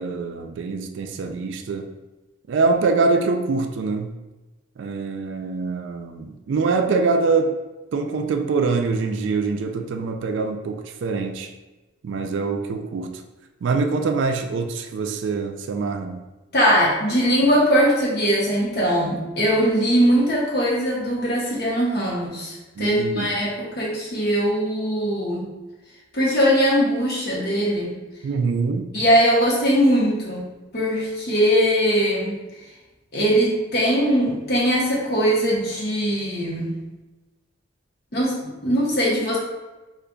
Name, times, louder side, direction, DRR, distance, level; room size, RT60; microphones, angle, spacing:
voice 1, 0.0-1.9 2.5-4.1 4.8-7.6 7.9-11.5 12.0-13.2 13.6-16.2 22.8-23.3 28.2-28.9, right 4 dB, 65° right, 5 dB, 0.3 m, -24 dB
voice 2, 16.5-25.5 26.1-27.9 28.9-30.5 30.7-32.4 33.1-36.7 38.1-39.4, equal, 50° left, -4 dB, 0.9 m, -21 dB
5.1 x 2.4 x 2.3 m, 1.1 s
head